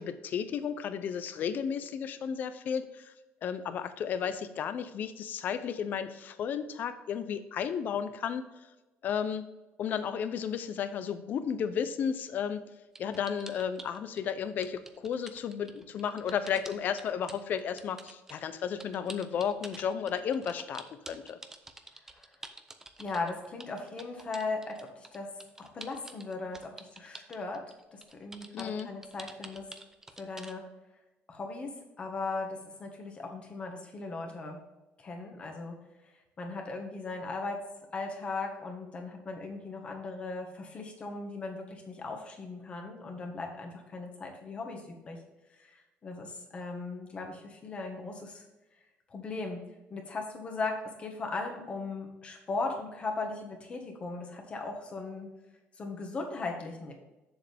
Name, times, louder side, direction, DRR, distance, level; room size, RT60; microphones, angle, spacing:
voice 1, 0.0-3.1 3.4-8.4 9.0-9.5 9.8-12.7 13.0-21.4 28.5-28.9, left 7 dB, 45° left, 11 dB, 0.7 m, -33 dB
sound 1, 13.0-14.3 14.6-30.6, right 2 dB, 10° right, 0.6 m, -48 dB
voice 2, 23.0-25.3 25.6-27.6 27.9-29.6 30.2-30.6 31.3-31.7 32.0-34.6 35.0-35.8 36.4-37.6 37.9-45.2 45.6-48.4 49.1-49.6 49.9-55.3 55.8-56.9, left 3 dB, 30° left, 3 dB, 1.5 m, -38 dB
7.5 x 7.1 x 3.5 m, 1.1 s
cardioid pair, 160°, 4 cm